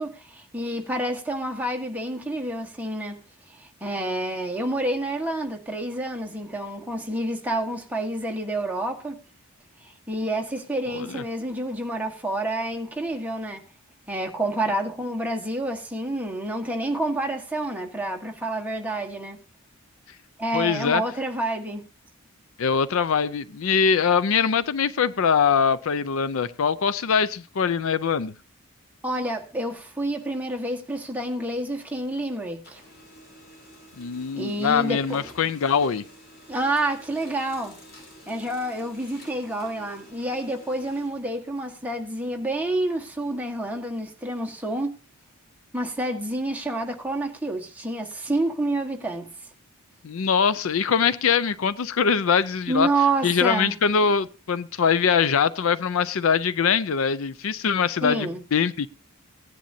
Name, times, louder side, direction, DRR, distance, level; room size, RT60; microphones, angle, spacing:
voice 1, 0.0-3.2 3.5-9.2 10.1-13.6 14.1-19.4 20.4-21.9 29.0-32.8 34.3-35.2 36.5-37.7 38.3-45.0 45.7-49.3 52.7-53.8 58.0-58.4, right 1 dB, 5° right, 1.4 m, -28 dB
voice 2, 20.5-21.0 22.6-28.3 34.0-36.0 50.0-52.9 53.2-58.9, left 6 dB, 65° left, 0.5 m, -23 dB
Printer, 31.1-32.2 32.5-42.1, equal, 45° left, 5.3 m, -50 dB
17.0 x 10.5 x 2.7 m
head